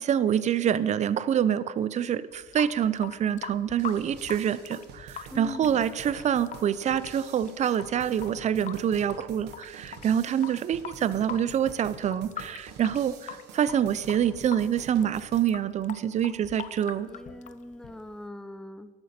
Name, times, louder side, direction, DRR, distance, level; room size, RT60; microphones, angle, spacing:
voice 1, 0.0-17.1, right 9 dB, 45° right, 17 dB, 0.6 m, -26 dB
Water tap faucet / Sink (filling or washing) / Drip, 2.3-18.3, left 9 dB, 45° left, 0.7 m, -43 dB
sound 1, 3.8-15.5, right 6 dB, 85° right, 1.2 m, -47 dB
voice 2, 5.3-5.8 10.3-10.6 17.1-18.9, left 1 dB, 5° left, 12 dB, 0.6 m, -41 dB
14.0 x 11.0 x 4.3 m, 1.5 s
cardioid pair, 110°, 17 cm